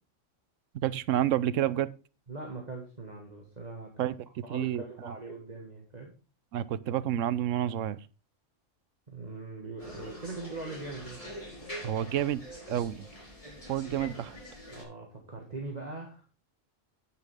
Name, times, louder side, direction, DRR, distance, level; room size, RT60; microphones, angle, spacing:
voice 1, 0.7-1.9 4.0-5.1 6.5-8.0 11.8-12.4 12.7-13.0 13.7-14.4, right 11 dB, 90° right, 17 dB, 1.0 m, -29 dB
voice 2, 2.3-4.1 4.4-6.1 9.1-11.2 14.7-16.2, right 3 dB, 35° right, 1 dB, 2.0 m, -41 dB
sound 1, 9.8-14.8, equal, 30° left, 5.3 m, -45 dB
9.7 x 9.3 x 3.5 m, 0.34 s
omnidirectional pair, 1.3 m